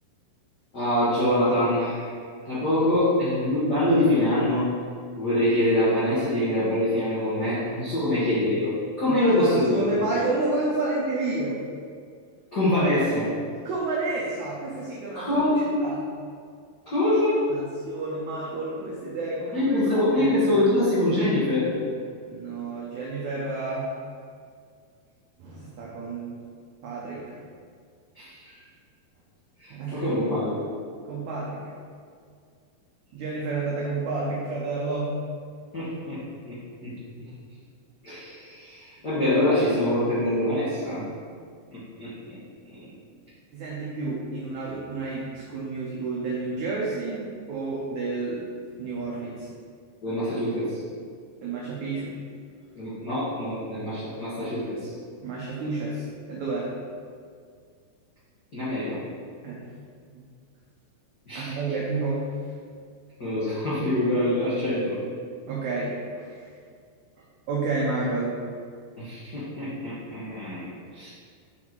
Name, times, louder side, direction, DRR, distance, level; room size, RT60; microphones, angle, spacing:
voice 1, 0.7-2.0 2.4-4.7 5.2-10.0 12.5-13.3 15.1-15.8 16.8-17.4 19.5-21.7 28.1-28.6 29.6-30.6 35.7-36.2 36.4-36.9 38.0-41.0 41.7-42.4 42.7-42.9 50.0-50.8 52.8-54.9 58.5-59.0 61.3-61.5 63.2-65.0 69.0-71.1, left 1 dB, 80° left, -11 dB, 0.9 m, -24 dB
voice 2, 9.2-11.6 13.6-16.0 17.5-20.3 22.3-23.9 25.4-26.4 26.8-27.4 29.7-30.1 31.1-31.6 33.1-35.2 43.5-48.4 48.8-49.5 51.4-52.2 55.2-56.8 59.4-59.7 60.1-60.2 61.3-62.5 65.5-66.5 67.5-68.4, right 3 dB, 90° right, -5 dB, 1.6 m, -30 dB
7.3 x 4.3 x 4.5 m, 2.1 s
omnidirectional pair, 4.6 m